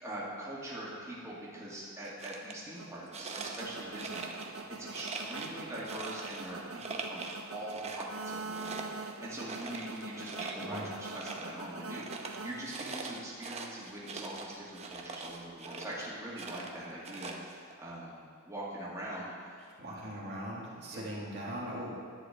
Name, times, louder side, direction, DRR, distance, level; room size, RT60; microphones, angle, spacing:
voice 1, 0.0-7.3 7.5-18.2 18.5-20.1 20.8-21.1, right 1 dB, 15° right, -7 dB, 2.3 m, -43 dB
sound 1, 2.0-2.5 3.1-4.6 4.9-6.5 6.8-7.4 7.7-11.6 11.9-16.1 16.4-17.7, right 4 dB, 30° right, 0.8 m, -43 dB
sound 2, 2.8-13.2, right 3 dB, 75° right, 0.6 m, -44 dB
voice 2, 19.8-22.0, equal, 55° right, -5 dB, 2.0 m, -40 dB
11.0 x 4.9 x 8.4 m, 2.2 s
head